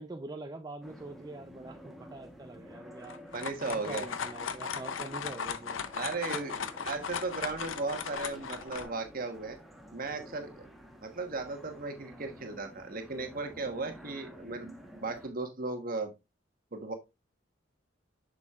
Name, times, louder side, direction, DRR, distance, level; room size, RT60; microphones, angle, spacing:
voice 1, 0.0-5.8, right 2 dB, 20° right, 0.4 m, -44 dB
sound 1, 0.8-15.3, equal, ahead, 1.0 m, -51 dB
sound 2, 3.0-8.9, left 6 dB, 80° left, 0.6 m, -37 dB
voice 2, 3.3-4.1 6.0-9.6 9.9-10.7 11.0-14.7 15.0-16.1 16.7-16.9, right 3 dB, 45° right, 1.2 m, -36 dB
7.0 x 6.2 x 2.4 m
head